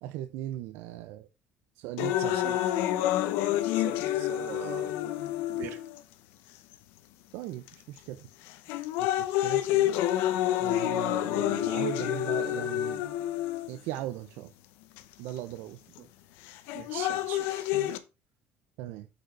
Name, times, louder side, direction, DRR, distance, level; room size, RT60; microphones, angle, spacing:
voice 1, 0.0-1.3 1.8-2.4 7.3-8.2 9.0-9.6 10.6-13.0 13.7-14.5 15.2-15.8 18.8-19.1, right 14 dB, 85° right, 0.7 m, -38 dB
sound 1, 2.0-6.0 6.7-6.8 7.7-8.0 8.5-14.0 15.0-15.1 16.5-18.0, left 13 dB, 90° left, 0.9 m, -28 dB
voice 2, 3.7-4.9 5.5-5.8 16.0-16.1 16.7-17.7, right 10 dB, 70° right, 1.6 m, -41 dB
8.5 x 5.3 x 4.7 m
cardioid pair, 145°, 4 cm